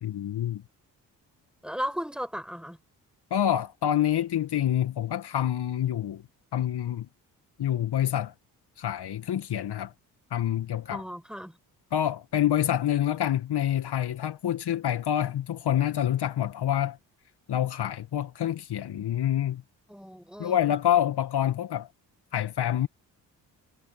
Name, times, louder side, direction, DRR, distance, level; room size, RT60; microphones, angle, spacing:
voice 1, 0.0-0.6 3.3-6.2 6.5-7.1 7.6-8.3 8.8-9.9 10.3-11.0 11.9-17.0 17.5-19.6 20.4-21.9 22.3-22.9, left 11 dB, 55° left, 2.0 m, -27 dB
voice 2, 1.6-2.8 10.9-11.6 19.9-20.6, equal, ahead, 6.9 m, -35 dB
hypercardioid pair, 40°, 47 cm